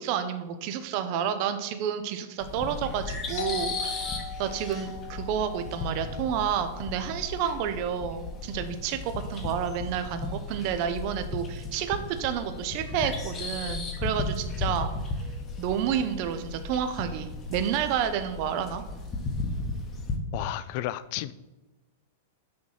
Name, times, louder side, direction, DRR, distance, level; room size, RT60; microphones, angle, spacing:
voice 1, 0.0-14.9 15.6-18.8, right 8 dB, 45° right, 9 dB, 0.5 m, -30 dB
sound 1, 2.4-20.2, left 3 dB, 25° left, 0.8 m, -35 dB
Doorbell, 3.4-8.8, left 6 dB, 70° left, 0.8 m, -41 dB
voice 2, 20.3-21.3, left 14 dB, 50° left, 16 dB, 0.3 m, -32 dB
6.3 x 3.0 x 5.6 m, 1.1 s
supercardioid pair, 145°, 0 cm